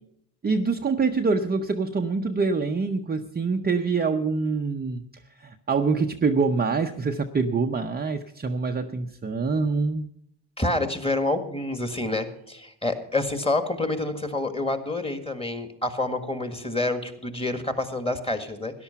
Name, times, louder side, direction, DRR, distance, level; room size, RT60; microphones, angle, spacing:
voice 1, 0.4-5.1 5.4-10.1, right 4 dB, 20° right, 4 dB, 0.7 m, -25 dB
voice 2, 10.6-18.8, left 2 dB, 10° left, 9 dB, 1.7 m, -28 dB
13.5 x 10.5 x 5.8 m, 0.71 s
supercardioid pair, 80°, 50 cm